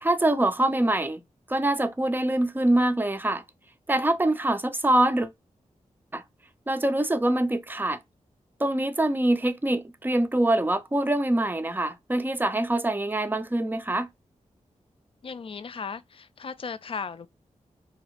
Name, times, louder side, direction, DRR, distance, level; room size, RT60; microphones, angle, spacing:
voice 1, 0.0-1.2 1.5-3.4 3.9-5.3 6.1-6.2 6.7-8.0 8.6-14.1, right 1 dB, 15° right, 0.5 m, -24 dB
voice 2, 15.2-17.3, left 5 dB, 45° left, 0.4 m, -36 dB
2.7 x 2.0 x 2.8 m
cardioid pair, 40°, 13 cm